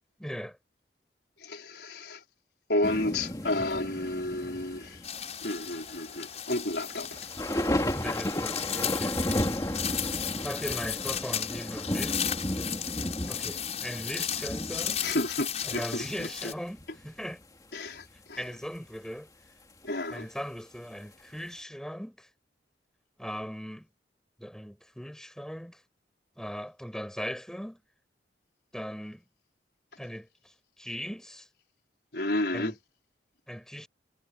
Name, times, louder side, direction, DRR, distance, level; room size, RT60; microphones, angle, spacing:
voice 1, 0.2-0.6 7.9-9.2 10.1-12.3 13.3-15.0 15.6-17.4 18.4-19.3 20.1-22.3 23.2-23.9 24.4-25.8 26.4-27.8 28.7-29.2 30.0-31.5 32.5-32.8 33.5-33.9, equal, 5° left, 7.5 m, -39 dB
voice 2, 1.4-2.2 2.7-5.0 5.4-7.2 15.0-16.3 17.7-18.4 19.8-20.3 32.1-32.7, left 1 dB, 65° left, 4.7 m, -31 dB
sound 1, 2.8-16.4 16.7-17.0 17.9-18.0, left 1 dB, 20° left, 2.6 m, -34 dB
sound 2, 5.0-16.5, left 9 dB, 40° left, 7.1 m, -35 dB
head